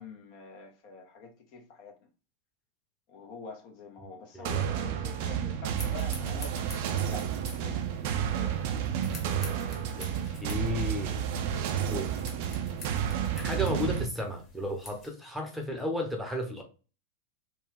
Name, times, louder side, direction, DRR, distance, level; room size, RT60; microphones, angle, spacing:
voice 1, 0.0-1.9 3.1-7.3 7.6-8.7 10.1-10.4 11.5-11.8, left 4 dB, 45° left, 0.9 m, -46 dB
sound 1, 4.4-14.0, right 9 dB, 50° right, 0.5 m, -31 dB
sound 2, 5.7-15.1, left 3 dB, 25° left, 1.5 m, -49 dB
voice 2, 10.4-11.2 11.5-12.2 13.3-16.6, left 1 dB, ahead, 0.9 m, -34 dB
4.3 x 2.3 x 3.3 m
figure-of-eight pair, 90°, 0 cm